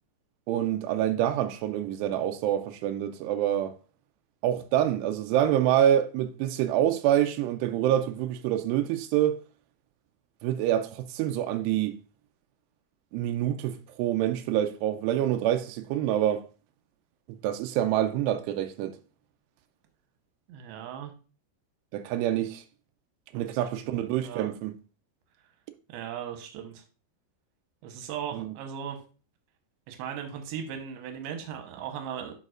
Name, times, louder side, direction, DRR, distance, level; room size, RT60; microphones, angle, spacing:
voice 1, 0.5-3.7 4.4-9.4 10.4-12.0 13.1-16.5 17.3-19.0 21.9-22.6 23.3-24.7 28.3-28.5, right 11 dB, 90° right, 2.3 m, -26 dB
voice 2, 20.5-21.1 23.3-23.7 24.2-24.5 25.9-26.8 27.8-29.0 29.9-32.3, right 8 dB, 75° right, 2.5 m, -37 dB
10.5 x 4.8 x 2.4 m
omnidirectional pair, 5.3 m